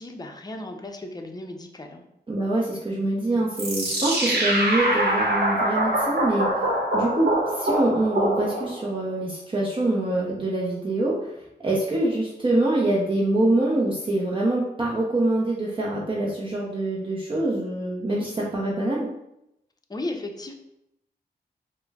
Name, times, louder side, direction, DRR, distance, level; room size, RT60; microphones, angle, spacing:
voice 1, 0.0-2.0 19.9-20.5, left 2 dB, 25° left, 4 dB, 0.6 m, -35 dB
voice 2, 2.3-6.5 6.9-11.2 11.6-19.1, right 1 dB, 30° right, -4 dB, 0.7 m, -25 dB
sound 1, 3.6-8.9, right 1 dB, 65° right, 0.9 m, -24 dB
4.8 x 2.1 x 2.3 m, 0.84 s
cardioid pair, 45°, 17 cm